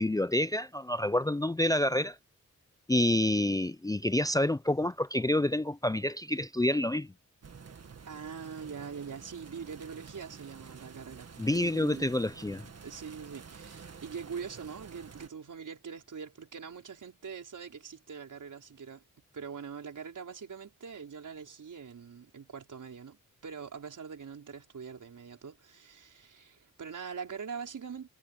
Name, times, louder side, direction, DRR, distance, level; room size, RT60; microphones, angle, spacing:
voice 1, 0.0-2.2 2.9-7.1 11.4-12.7, left 1 dB, 10° left, 0.5 m, -28 dB
sound 1, 7.4-15.3, right 6 dB, 50° right, 1.8 m, -49 dB
voice 2, 8.1-12.1 12.8-19.0 19.3-28.1, right 6 dB, 70° right, 5.1 m, -43 dB
wide cardioid pair, 105°, 32 cm